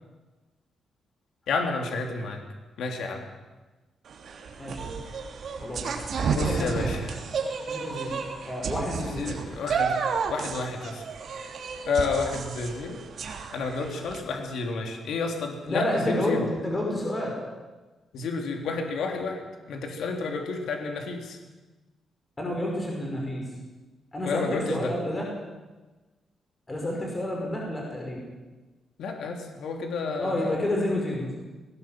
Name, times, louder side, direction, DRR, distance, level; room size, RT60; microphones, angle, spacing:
voice 1, 1.5-2.4 2.8-3.3 6.3-7.2 9.0-10.0 10.3-11.1 11.9-13.0 13.5-16.4 18.1-21.4 24.2-24.9 29.0-30.5, left 4 dB, 80° left, 3 dB, 3.2 m, -30 dB
sound 1, 4.1-14.2, right 5 dB, 55° right, 3.2 m, -32 dB
voice 2, 4.6-4.9 5.6-5.9 6.1-7.0 7.7-8.1 8.4-9.5 15.7-17.4 22.4-23.4 24.1-25.3 26.7-28.2 30.2-31.4, left 1 dB, 20° left, -1 dB, 5.8 m, -30 dB
19.5 x 19.0 x 7.7 m, 1.2 s
cardioid pair, 140°, 0 cm